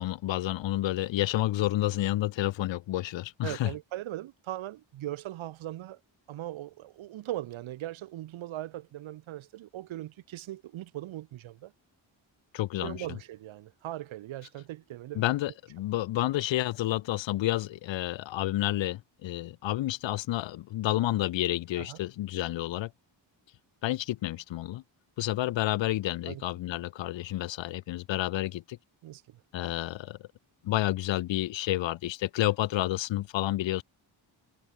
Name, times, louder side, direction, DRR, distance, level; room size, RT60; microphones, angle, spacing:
voice 1, 0.0-3.7 12.5-13.1 15.2-22.9 23.8-24.8 25.2-28.8 29.5-30.2 30.6-33.8, left 15 dB, 75° left, 0.5 m, -30 dB
voice 2, 3.4-6.0 6.3-11.7 12.8-15.3 21.8-22.0 26.3-26.4 29.0-29.4, right 14 dB, 85° right, 0.7 m, -39 dB
wide cardioid pair, 125°, 46 cm